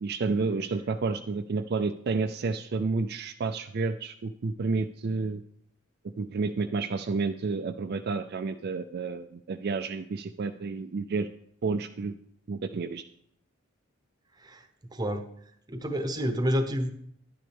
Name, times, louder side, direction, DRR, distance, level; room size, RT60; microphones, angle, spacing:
voice 1, 0.0-5.4 6.2-11.3 11.6-12.2 12.5-13.0, right 4 dB, 50° right, 7 dB, 0.4 m, -30 dB
voice 2, 14.4-15.3 15.7-16.9, equal, 20° right, 7 dB, 0.9 m, -29 dB
11.0 x 9.5 x 3.4 m, 0.69 s
head